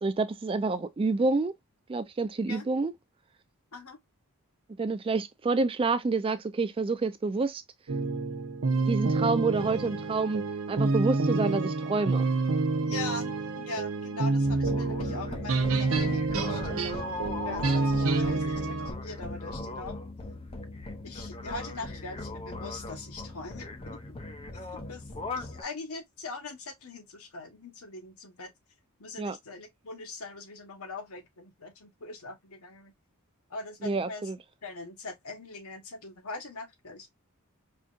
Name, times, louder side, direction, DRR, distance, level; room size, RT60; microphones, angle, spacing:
voice 1, 0.0-1.5 1.9-2.9 4.8-7.6 8.9-12.3 29.2-29.4 33.8-34.4, right 3 dB, 25° right, 0.3 m, -28 dB
sound 1, 7.9-18.9, right 3 dB, 65° right, 0.7 m, -28 dB
voice 2, 12.8-16.9 17.4-20.0 21.0-24.2 24.6-25.0 25.3-28.5 29.0-32.9 33.5-34.3 34.6-37.1, left 3 dB, 75° left, 1.3 m, -41 dB
sound 2, 14.4-25.6, left 2 dB, 25° left, 0.5 m, -38 dB
4.9 x 2.7 x 2.3 m
head